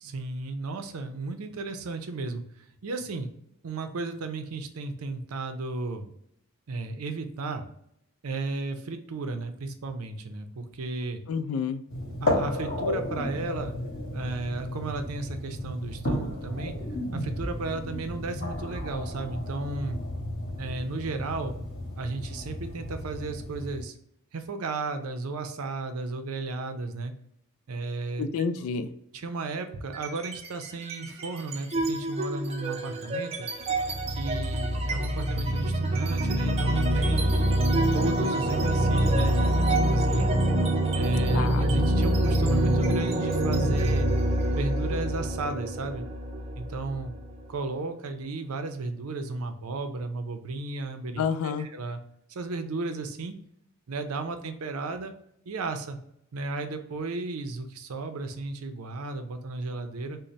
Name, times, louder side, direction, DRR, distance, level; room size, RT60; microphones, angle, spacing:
voice 1, 0.0-2.4 2.8-3.3 3.6-6.1 6.7-7.6 8.2-11.2 12.2-13.7 14.1-16.7 17.1-20.0 20.6-21.6 22.0-24.0 24.3-27.1 27.7-28.3 29.1-33.5 34.1-37.3 37.9-40.3 40.9-44.1 44.5-46.1 46.6-47.1 47.5-52.0 52.3-53.4 53.9-55.1 55.5-56.0 56.3-60.2, right 3 dB, 90° right, 7 dB, 0.5 m, -34 dB
voice 2, 11.3-11.8 28.2-28.9 41.3-41.7 51.2-51.7, left 6 dB, 75° left, 11 dB, 0.3 m, -29 dB
sound 1, 11.9-23.8, left 1 dB, 55° left, 1.2 m, -33 dB
sound 2, 29.9-30.5 30.8-47.4, right 1 dB, 30° right, 0.5 m, -25 dB
3.9 x 2.1 x 3.1 m, 0.72 s
head